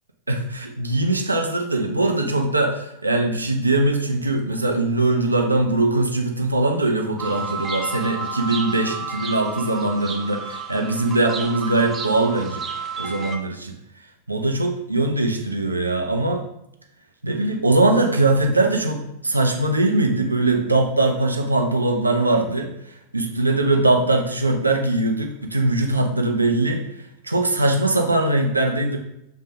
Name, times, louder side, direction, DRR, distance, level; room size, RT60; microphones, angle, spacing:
voice 1, 0.3-12.6 13.0-13.7 14.3-16.4 17.2-22.7 23.1-26.8 27.2-29.0, right 2 dB, 80° right, 2 dB, 0.7 m, -21 dB
sound 1, 7.2-13.4, right 4 dB, 20° right, 0.8 m, -31 dB
6.9 x 3.6 x 3.7 m, 0.82 s
figure-of-eight pair, 90°, 0 cm